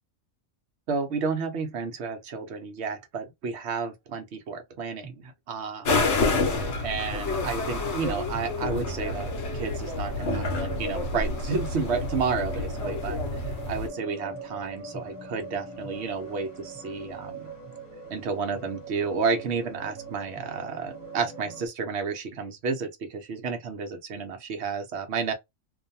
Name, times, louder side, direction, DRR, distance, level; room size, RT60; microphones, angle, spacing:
voice 1, 0.9-6.1 6.5-17.5 18.1-25.3, right 5 dB, 60° right, 0.9 m, -31 dB
sound 1, 5.0-5.1 5.9-6.0 6.5-6.6 7.2-21.7, right 3 dB, 15° left, 1.0 m, -42 dB
sound 2, 5.9-13.9, left 3 dB, 65° left, 0.9 m, -29 dB
2.6 x 2.2 x 2.6 m
omnidirectional pair, 1.3 m